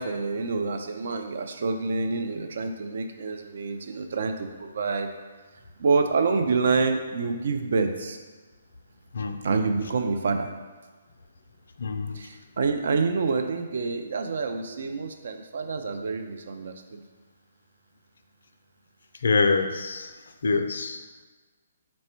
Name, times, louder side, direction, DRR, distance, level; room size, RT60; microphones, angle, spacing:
voice 1, 0.0-5.1 5.8-8.2 9.4-10.5 12.1-17.0, right 4 dB, 60° right, 6 dB, 0.4 m, -27 dB
voice 2, 11.8-12.2 19.2-20.1 20.4-21.0, left 4 dB, 65° left, 7 dB, 0.3 m, -25 dB
4.2 x 2.1 x 4.3 m, 1.3 s
figure-of-eight pair, 135°, 0 cm